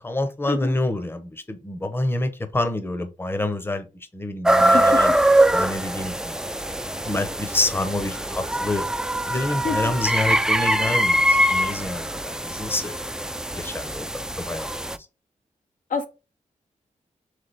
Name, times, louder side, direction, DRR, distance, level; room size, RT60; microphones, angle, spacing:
voice 1, 0.0-3.9 4.1-5.1 5.5-6.3 7.1-8.8 9.3-13.0 13.6-14.8, left 2 dB, 15° left, 0.8 m, -27 dB
sound 1, 4.4-15.0, right 1 dB, 5° right, 0.4 m, -22 dB
voice 2, 4.6-5.0 9.6-9.8 15.9-16.1, left 5 dB, 75° left, 0.9 m, -27 dB
3.6 x 3.3 x 3.9 m
cardioid pair, 75°, 14 cm